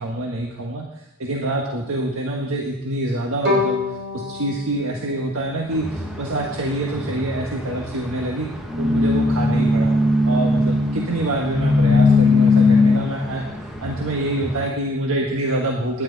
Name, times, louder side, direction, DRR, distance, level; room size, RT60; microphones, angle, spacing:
voice 1, 0.0-8.5 8.8-9.9 10.2-13.5 13.8-16.0, right 1 dB, 85° right, 0 dB, 1.6 m, -26 dB
Bowed string instrument, 3.4-6.5, left 3 dB, 50° right, 5.6 m, -27 dB
sound 1, 5.7-14.7, left 2 dB, ahead, 1.5 m, -20 dB
18.5 x 10.5 x 4.1 m, 0.84 s
head